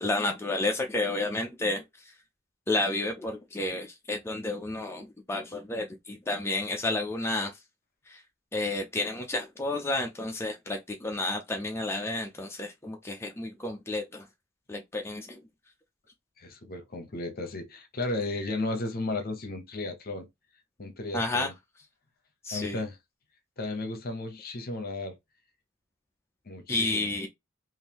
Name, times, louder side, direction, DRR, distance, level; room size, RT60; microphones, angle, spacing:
voice 1, 0.0-2.1 2.7-7.6 8.1-8.2 8.5-14.3 14.7-15.4 21.1-21.5 22.4-22.8 26.7-27.3, left 2 dB, 10° left, 0.5 m, -31 dB
voice 2, 16.4-20.3 20.8-21.5 22.5-23.0 23.6-25.2 26.5-27.1, left 2 dB, 50° left, 0.9 m, -34 dB
3.7 x 2.6 x 2.9 m
head